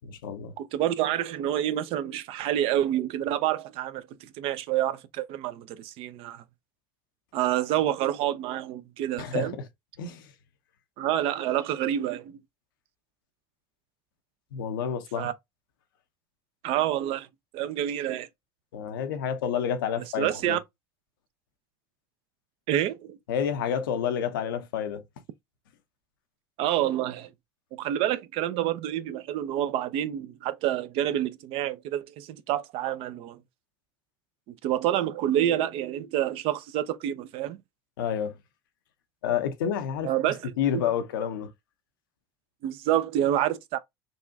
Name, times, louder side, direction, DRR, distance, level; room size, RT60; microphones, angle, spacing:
voice 1, 0.0-0.5 9.2-9.7 10.0-10.3 14.5-15.3 18.7-20.6 23.3-25.0 38.0-38.4 39.2-40.1 40.6-41.5, left 8 dB, 85° left, 0.7 m, -29 dB
voice 2, 0.6-6.4 7.3-9.6 11.0-12.4 15.2-15.3 16.6-17.3 17.5-18.3 20.2-20.6 22.7-23.2 26.6-27.3 27.7-33.4 34.6-37.6 40.0-40.5 42.6-43.8, right 12 dB, 60° right, 0.5 m, -28 dB
4.1 x 2.4 x 2.6 m
hypercardioid pair, 85°, 11 cm